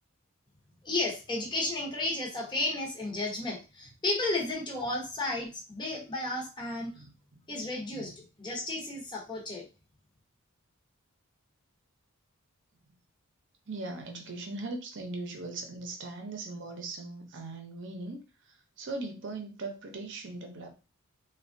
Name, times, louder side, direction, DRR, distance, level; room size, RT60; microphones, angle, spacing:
voice 1, 0.8-6.9 7.5-9.6, left 2 dB, 20° left, -2 dB, 0.8 m, -33 dB
voice 2, 6.9-7.4 7.9-8.2 12.9-13.0 13.7-20.7, right 2 dB, 55° right, 4 dB, 0.7 m, -40 dB
3.3 x 2.3 x 2.5 m, 0.30 s
head